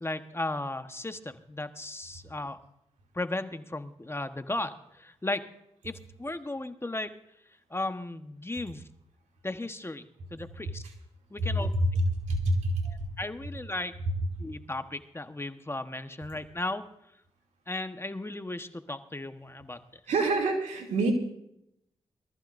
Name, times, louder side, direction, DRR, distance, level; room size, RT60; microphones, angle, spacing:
voice 1, 0.0-2.6 3.1-5.4 5.8-7.1 7.7-8.8 9.4-10.1 10.3-10.9 11.3-11.7 12.8-13.9 14.4-16.8 17.7-19.8, left 2 dB, 20° left, 9 dB, 1.2 m, -35 dB
voice 2, 11.5-12.7 20.1-21.1, right 1 dB, 85° right, 1 dB, 2.8 m, -26 dB
23.0 x 14.0 x 2.6 m, 0.77 s
supercardioid pair, 45°, 12 cm